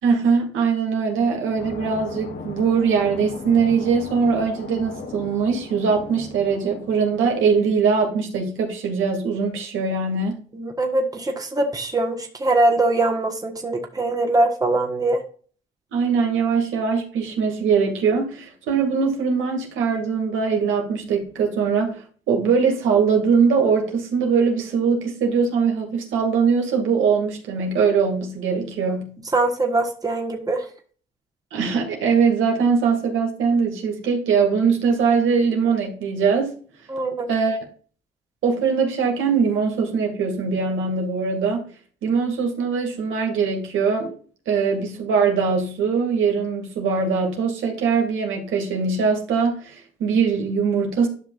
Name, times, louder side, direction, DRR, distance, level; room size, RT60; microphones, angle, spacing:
voice 1, 0.0-10.4 15.9-22.0 22.3-29.2 31.5-36.5 37.3-37.6 38.4-41.7 42.0-44.1 44.5-51.1, right 5 dB, 80° right, 2.4 m, -21 dB
sound 1, 1.6-8.0, left 4 dB, 65° left, 1.5 m, -38 dB
voice 2, 10.5-15.2 29.3-30.7 36.9-37.3, right 2 dB, 20° right, 1.4 m, -22 dB
11.5 x 5.8 x 2.5 m
cardioid pair, 90°, 20 cm